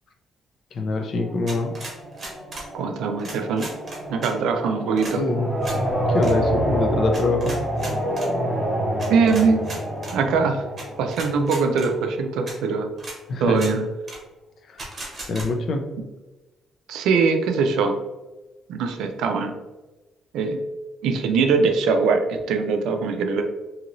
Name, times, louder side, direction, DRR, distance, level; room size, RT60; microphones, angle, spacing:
voice 1, 0.7-1.8 5.2-5.5 6.1-7.6 13.3-13.8 14.7-14.8 15.3-15.9, left 3 dB, 50° left, 5 dB, 0.4 m, -24 dB
sound 1, 1.2-12.1, equal, ahead, 1.0 m, -27 dB
sound 2, 1.5-2.7 3.2-4.3 5.0-5.2 5.6-5.8 6.2-6.3 7.1-8.3 9.0-10.2 10.8-10.9 11.1-11.9 12.5-12.6 13.0-13.2 13.5-13.7 14.1-14.2 14.8-15.5, right 2 dB, 30° right, 0.9 m, -36 dB
voice 2, 2.7-3.7 4.1-5.2 9.1-9.6 10.1-10.6 11.0-12.9 13.4-13.9 16.9-18.0 18.7-19.6 20.3-20.6 21.0-23.4, right 5 dB, 85° right, 5 dB, 0.4 m, -22 dB
3.0 x 2.7 x 2.5 m, 1.1 s
cardioid pair, 150°, 0 cm